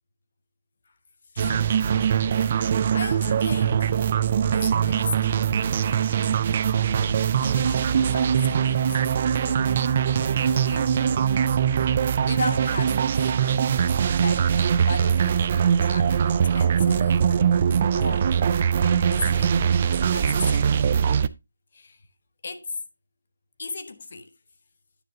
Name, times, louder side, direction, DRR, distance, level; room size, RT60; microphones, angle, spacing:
voice 1, 1.3-1.8 2.4-4.0 4.5-5.5 7.1-9.9 10.5-11.6 12.2-13.1 14.2-17.3 17.9-18.4 18.8-19.8 20.1-21.0 21.7-22.1 22.4-22.8 23.6-24.3, left 3 dB, 55° left, 1.1 m, -36 dB
sound 1, 1.4-21.3, right 8 dB, 35° right, 0.4 m, -22 dB
9.9 x 7.7 x 2.8 m
figure-of-eight pair, 165°, 0 cm